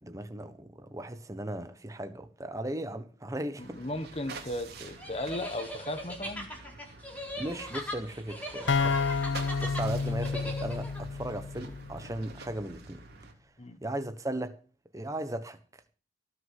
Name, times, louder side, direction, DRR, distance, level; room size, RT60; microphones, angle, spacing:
voice 1, 0.0-3.8 7.4-13.0 13.8-14.6 14.9-15.6, right 1 dB, 15° right, 1.2 m, -37 dB
voice 2, 3.6-6.5 13.6-13.8, left 1 dB, 30° left, 1.3 m, -36 dB
sound 1, 3.6-13.3, right 3 dB, 50° right, 3.3 m, -48 dB
sound 2, 5.0-11.0, equal, 10° left, 4.2 m, -39 dB
sound 3, 8.7-12.3, left 4 dB, 60° left, 0.6 m, -30 dB
18.0 x 6.4 x 7.6 m
head